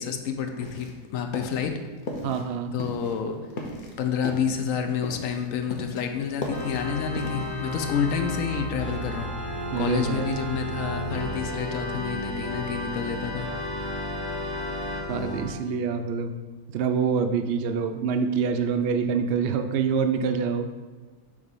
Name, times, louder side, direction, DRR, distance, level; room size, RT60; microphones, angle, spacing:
voice 1, 0.0-1.7 2.7-3.4 4.0-9.3 9.8-13.5, left 7 dB, 70° left, 6 dB, 1.0 m, -29 dB
sound 1, 0.6-1.0 1.3-1.7 2.0-2.5 2.8-6.0 6.3-7.6, left 1 dB, 40° left, 0.9 m, -36 dB
voice 2, 2.2-2.7 9.7-10.3 15.1-16.3 16.7-20.7, right 6 dB, 65° right, 7 dB, 0.7 m, -26 dB
Organ, 6.5-15.6, left 1 dB, 25° left, 0.6 m, -32 dB
7.3 x 3.2 x 5.5 m, 1.3 s
omnidirectional pair, 1.6 m